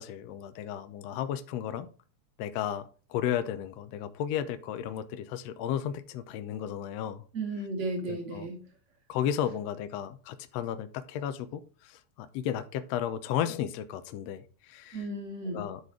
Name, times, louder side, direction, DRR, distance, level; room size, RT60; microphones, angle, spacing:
voice 1, 0.0-1.9 2.4-7.2 8.1-8.5 9.1-15.0 15.5-15.8, left 10 dB, 75° left, 10 dB, 1.7 m, -34 dB
voice 2, 7.3-8.7 14.9-15.7, right 2 dB, 25° right, 2 dB, 2.1 m, -34 dB
11.0 x 4.1 x 4.7 m, 0.37 s
omnidirectional pair, 3.3 m